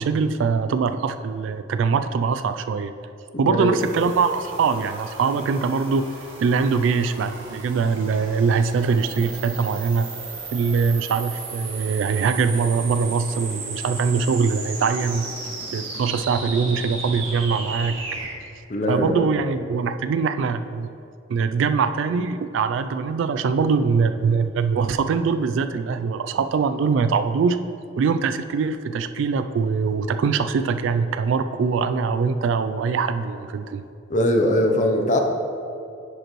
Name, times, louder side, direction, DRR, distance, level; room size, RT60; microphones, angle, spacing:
voice 1, 0.0-2.9 3.4-6.1 6.4-10.1 10.5-15.3 15.7-18.0 18.9-20.9 21.3-27.6 28.0-33.8, right 5 dB, 70° right, 10 dB, 0.3 m, -22 dB
voice 2, 3.3-3.8 18.7-19.3 34.1-35.2, left 1 dB, 40° left, 3 dB, 0.6 m, -21 dB
sound 1, 3.8-18.3, right 3 dB, 85° right, 1.6 m, -35 dB
10.0 x 5.2 x 3.1 m, 2.6 s
head